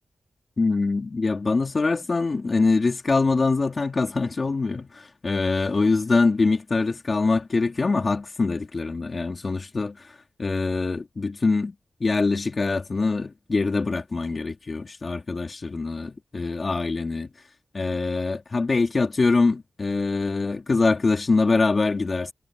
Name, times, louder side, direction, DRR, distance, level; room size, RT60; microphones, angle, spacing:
voice 1, 0.6-11.7 12.0-17.3 17.7-22.3, left 3 dB, 40° left, 3.6 m, -24 dB
wide cardioid pair, 115°, 0 cm